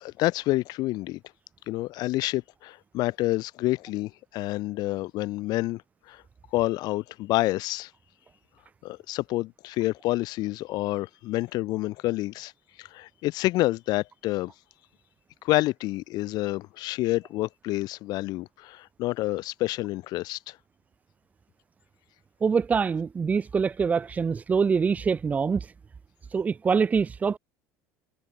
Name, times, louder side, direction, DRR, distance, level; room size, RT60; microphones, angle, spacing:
voice 1, 0.0-1.2 1.7-5.8 6.1-6.2 6.5-7.9 8.8-12.5 12.8-14.5 15.4-20.6, left 18 dB, 60° left, 1.1 m, -28 dB
voice 2, 22.4-25.7 26.3-27.4, right 5 dB, 20° right, 0.3 m, -24 dB
supercardioid pair, 115°, 8 cm